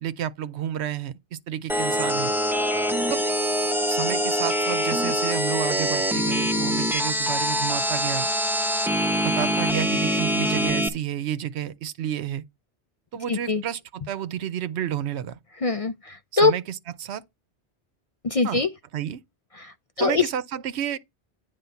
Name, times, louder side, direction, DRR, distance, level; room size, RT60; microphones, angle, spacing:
voice 1, 0.0-2.3 3.1-3.2 3.9-8.3 9.2-12.4 13.1-15.4 16.3-16.6 17.0-17.2 18.4-18.6 18.9-19.2 20.0-21.0, right 10 dB, 80° right, 0.9 m, -30 dB
sound 1, 1.7-10.9, equal, ahead, 0.6 m, -24 dB
voice 2, 13.3-13.6 15.6-16.5 18.2-18.7 19.6-20.2, left 4 dB, 45° left, 0.5 m, -23 dB
9.4 x 3.5 x 6.8 m
omnidirectional pair, 1.1 m